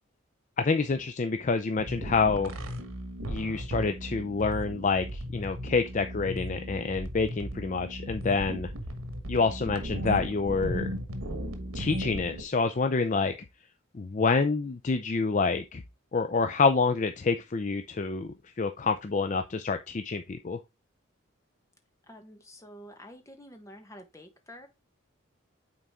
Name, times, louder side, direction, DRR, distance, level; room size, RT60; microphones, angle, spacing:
voice 1, 0.6-2.5 3.3-8.7 9.3-10.9 11.7-13.3 13.9-15.8 16.1-20.6, left 4 dB, 35° left, 0.4 m, -27 dB
sound 1, 1.8-12.4, equal, 80° right, 1.5 m, -36 dB
voice 2, 22.1-24.7, equal, 15° left, 1.2 m, -48 dB
8.9 x 4.0 x 3.6 m
head